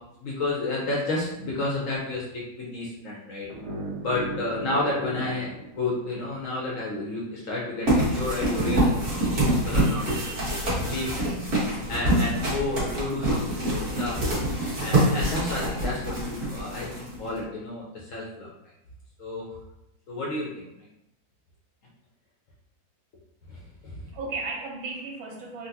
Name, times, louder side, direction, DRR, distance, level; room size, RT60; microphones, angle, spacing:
voice 1, 0.2-3.5 4.0-5.5 5.8-10.1 10.9-11.3 11.9-14.4 14.8-18.5 19.2-19.4 20.1-20.7 23.5-24.0, left 2 dB, 70° left, -4 dB, 0.7 m, -31 dB
sound 1, 3.5-6.6, right 2 dB, 60° right, 1.4 m, -37 dB
sound 2, 7.9-17.4, right 1 dB, 40° right, 0.9 m, -25 dB
voice 2, 9.8-10.7 11.1-11.5 24.1-25.7, right 3 dB, 85° right, -2 dB, 1.6 m, -37 dB
3.8 x 2.2 x 2.7 m, 0.84 s
omnidirectional pair, 2.1 m